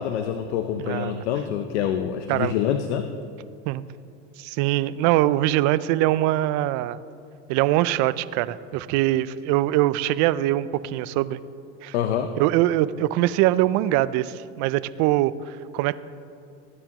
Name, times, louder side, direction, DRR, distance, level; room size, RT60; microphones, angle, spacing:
voice 1, 0.0-3.1 11.9-12.4, left 9 dB, 85° left, 8 dB, 0.7 m, -26 dB
voice 2, 0.8-1.2 2.3-2.5 3.7-3.8 4.4-7.0 7.5-11.4 11.8-11.9 12.4-16.0, right 15 dB, 60° right, 16 dB, 0.5 m, -23 dB
18.0 x 9.6 x 3.0 m, 2.6 s
supercardioid pair, 105°, 33 cm